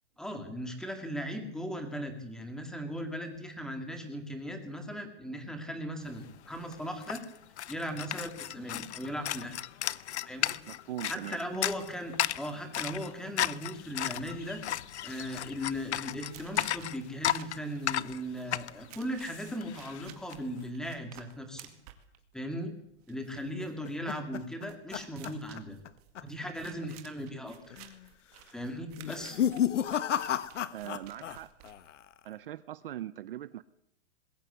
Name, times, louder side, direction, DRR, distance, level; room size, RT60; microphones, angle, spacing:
voice 1, 0.2-7.3 7.7-9.6 10.2-10.6 11.1-14.6 15.0-21.7 22.3-22.7 23.1-25.8 26.2-27.8 28.5-29.4, equal, ahead, 6 dB, 2.0 m, -38 dB
sound 1, 6.2-6.3 6.5-20.4, left 12 dB, 70° left, 0.9 m, -35 dB
voice 2, 10.7-11.4 30.7-31.5 32.2-33.6, right 13 dB, 50° right, 16 dB, 0.8 m, -41 dB
sound 2, 14.9-32.3, right 13 dB, 35° right, 2.2 m, -54 dB
sound 3, 23.4-25.9 26.2-26.5 26.8-26.9 27.7-28.1 28.9-31.4 31.6-32.2, left 10 dB, 90° left, 1.3 m, -32 dB
21.0 x 17.0 x 8.1 m, 0.78 s
hypercardioid pair, 170°, 35 cm